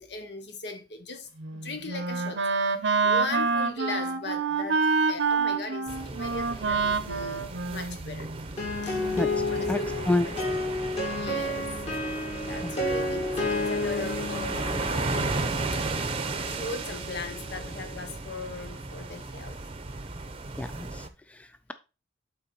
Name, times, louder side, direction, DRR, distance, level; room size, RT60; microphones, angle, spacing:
voice 1, 0.0-8.3 8.8-9.2 9.4-11.7 12.3-15.5 15.7-15.9 16.5-19.6, left 3 dB, 65° left, 1.2 m, -39 dB
Wind instrument woodwind instrument, 1.4-8.5, right 4 dB, 75° right, 0.8 m, -27 dB
sound 1, 5.9-21.1, right 3 dB, 30° right, 0.7 m, -35 dB
sound 2, 8.6-18.2, left 2 dB, 35° left, 2.3 m, -32 dB
voice 2, 9.1-9.8 10.1-10.3 12.6-12.8 20.6-21.7, left 2 dB, 5° left, 0.3 m, -30 dB
8.4 x 4.1 x 4.1 m
head